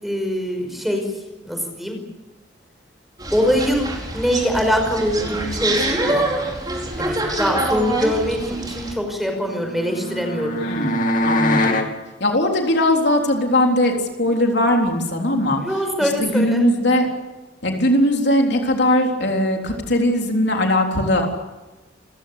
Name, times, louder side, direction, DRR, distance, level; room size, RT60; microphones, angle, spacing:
voice 1, 0.0-1.1 1.4-2.0 3.3-6.3 7.0-10.6 15.6-16.6, equal, ahead, 4 dB, 5.4 m, -23 dB
sound 1, 3.2-8.9, right 2 dB, 20° right, 4.7 m, -25 dB
sound 2, 9.3-11.9, left 1 dB, 45° left, 2.6 m, -23 dB
voice 2, 10.6-11.0 11.2-11.8 12.2-15.6 16.0-17.1 17.6-21.3, left 1 dB, 65° left, 2 dB, 3.8 m, -19 dB
29.5 x 16.0 x 8.5 m, 1.1 s
head